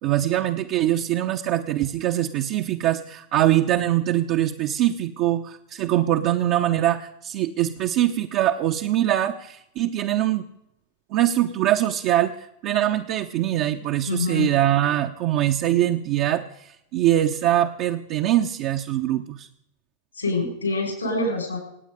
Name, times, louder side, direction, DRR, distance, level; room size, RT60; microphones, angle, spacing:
voice 1, 0.0-10.4 11.1-12.3 12.6-16.4 16.9-19.5, right 13 dB, 40° right, 3 dB, 0.9 m, -23 dB
voice 2, 14.1-14.5 20.2-21.6, left 2 dB, 80° left, 2 dB, 6.5 m, -25 dB
26.0 x 9.4 x 5.0 m, 0.79 s
figure-of-eight pair, 90°, 0 cm